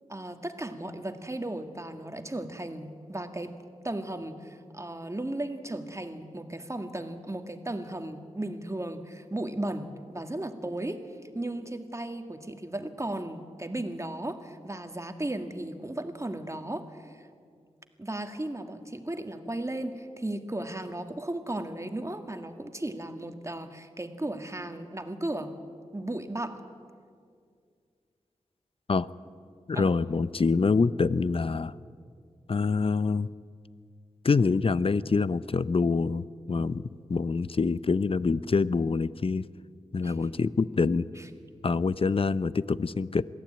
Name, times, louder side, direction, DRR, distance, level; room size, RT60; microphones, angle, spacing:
voice 1, 0.1-3.6 3.8-11.0 11.3-17.3 18.0-25.5 25.9-26.6 29.7-29.9 40.0-40.2 41.2-41.3, right 1 dB, 25° right, 7 dB, 1.8 m, -35 dB
voice 2, 29.7-31.7 32.5-33.3 34.2-36.8 37.1-39.5 39.9-41.1 41.6-43.3, left 4 dB, 45° left, 17 dB, 0.6 m, -26 dB
22.0 x 15.0 x 8.8 m, 2.2 s
cardioid pair, 50°, 13 cm